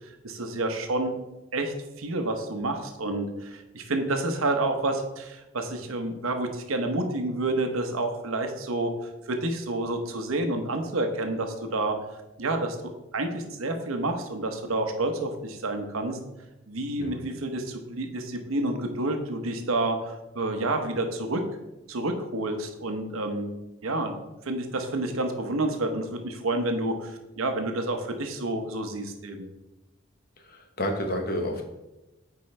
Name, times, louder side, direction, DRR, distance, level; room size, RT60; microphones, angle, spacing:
voice 1, 0.2-1.1 1.5-8.9 9.3-12.0 12.4-16.2 16.7-21.4 21.9-23.5 23.8-29.5, right 2 dB, 90° right, 5 dB, 0.9 m, -29 dB
voice 2, 30.4-31.6, left 1 dB, 45° left, 4 dB, 0.9 m, -30 dB
8.7 x 4.7 x 3.2 m, 0.99 s
head